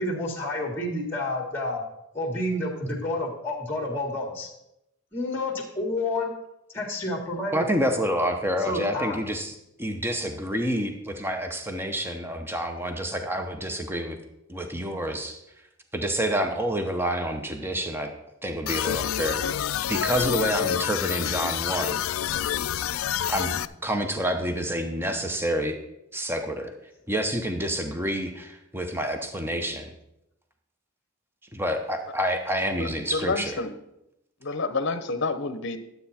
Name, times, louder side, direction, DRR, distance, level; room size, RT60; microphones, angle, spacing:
voice 1, 0.0-1.8 2.1-4.5 5.1-6.3 6.7-7.6 8.7-9.2, left 1 dB, 10° left, 0 dB, 1.8 m, -29 dB
voice 2, 7.5-14.2 14.5-15.4 15.9-18.1 18.4-19.4 19.9-22.0 23.3-25.8 26.1-26.7 27.1-29.9 31.5-33.5, equal, 10° right, 5 dB, 0.9 m, -28 dB
sound 1, 18.7-23.7, left 11 dB, 75° left, 0.3 m, -28 dB
voice 3, 32.8-33.7 34.4-35.8, left 3 dB, 55° left, 11 dB, 0.8 m, -29 dB
11.5 x 8.1 x 4.3 m, 0.85 s
head